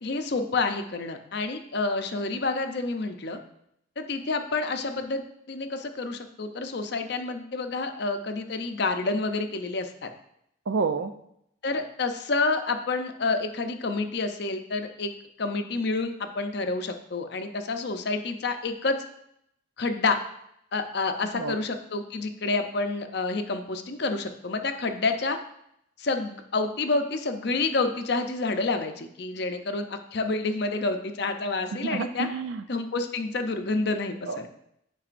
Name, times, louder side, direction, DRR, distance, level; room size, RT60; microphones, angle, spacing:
voice 1, 0.0-3.4 4.0-5.2 5.5-10.1 11.6-15.1 15.4-19.0 19.8-20.2 20.7-25.4 26.0-32.3 32.7-34.5, left 3 dB, 55° left, 7 dB, 0.6 m, -28 dB
voice 2, 10.7-11.1 21.3-21.6 31.8-32.6 34.3-34.4, right 4 dB, 65° right, 10 dB, 0.4 m, -29 dB
8.8 x 5.3 x 2.5 m, 0.75 s
head